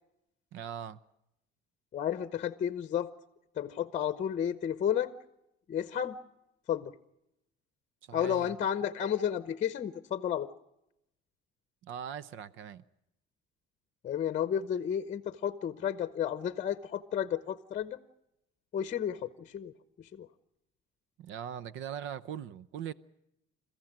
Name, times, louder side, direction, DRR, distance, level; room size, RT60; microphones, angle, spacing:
voice 1, 0.5-1.0 8.0-8.5 11.8-12.8 21.2-22.9, right 9 dB, 65° right, 0.8 m, -40 dB
voice 2, 1.9-3.1 3.5-5.1 5.7-6.2 6.7-6.9 8.1-10.5 14.0-18.0 18.7-20.3, left 9 dB, 35° left, 0.9 m, -32 dB
28.0 x 15.0 x 8.9 m
cardioid pair, 145°, 21 cm